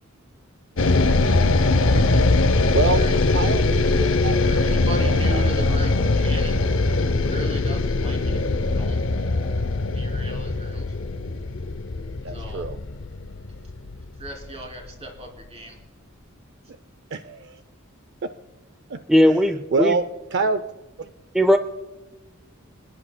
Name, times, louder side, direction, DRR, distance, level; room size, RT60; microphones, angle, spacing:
sound 1, 0.8-15.0, left 2 dB, 65° left, 0.6 m, -21 dB
voice 1, 1.7-2.4 2.7-3.0 3.3-4.7 5.0-5.4 12.2-12.8 17.1-17.6 18.2-18.3 18.9-19.4 19.7-20.0 20.3-20.6 21.0-21.1, right 4 dB, 55° right, 11 dB, 0.5 m, -27 dB
voice 2, 2.9-3.2 4.4-6.7 7.1-9.0 9.9-11.0 12.3-12.7 14.2-15.8, right 1 dB, 30° right, 0 dB, 3.1 m, -37 dB
voice 3, 19.1-19.9 21.3-21.6, equal, ahead, 9 dB, 0.4 m, -17 dB
26.5 x 10.0 x 2.2 m, 1.2 s
head